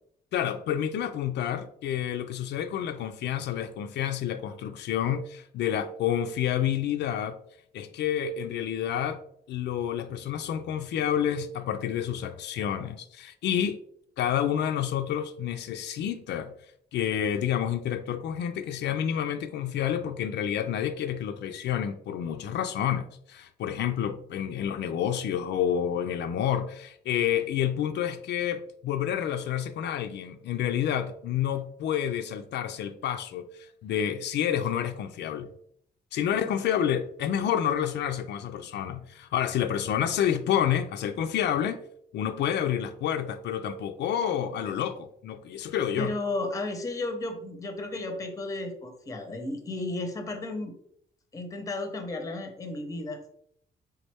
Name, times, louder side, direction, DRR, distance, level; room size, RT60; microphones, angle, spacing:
voice 1, 0.3-7.4 7.7-9.2 9.5-13.8 14.2-16.5 16.9-35.5 36.1-41.8 42.1-46.1, left 9 dB, 80° left, 0.4 m, -29 dB
voice 2, 46.0-50.7 51.3-53.2, left 2 dB, 20° left, 0.7 m, -33 dB
4.1 x 3.5 x 3.4 m
wide cardioid pair, 175°, 18 cm